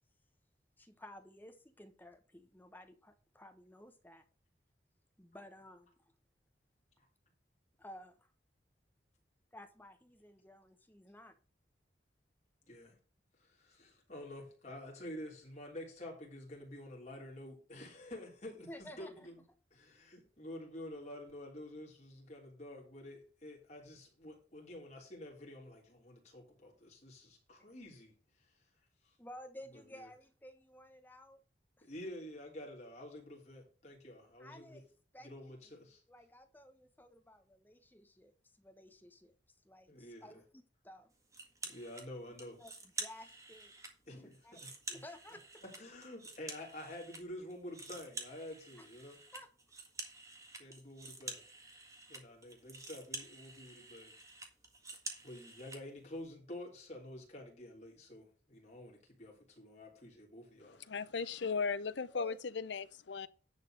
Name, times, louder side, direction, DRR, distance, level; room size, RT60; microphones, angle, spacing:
voice 1, 0.8-4.2 5.2-6.1 7.8-8.3 9.5-11.3 18.7-19.3 27.6-27.7 29.2-31.4 31.8-31.9 34.4-34.9 35.1-35.3 35.6-35.7 36.1-41.1 42.6-43.7 44.2-44.6 44.9-45.4 48.8-48.9 49.3-49.5 62.1-62.4, left 1 dB, 10° left, 1.0 m, -54 dB
voice 2, 12.7-13.0 13.4-19.1 19.7-28.1 29.0-29.1 29.7-29.8 31.8-34.8 35.2-36.0 39.9-40.4 41.6-42.6 44.1-45.0 45.8-49.2 50.6-51.4 52.1-54.1 55.2-60.8, left 1 dB, 40° left, 3.4 m, -49 dB
sound 1, 41.3-42.1 42.4-43.9 44.3-47.2 47.5-55.8, right 3 dB, 15° right, 1.8 m, -48 dB
voice 3, 60.8-63.3, left 5 dB, 75° left, 0.6 m, -37 dB
10.5 x 4.2 x 6.5 m
head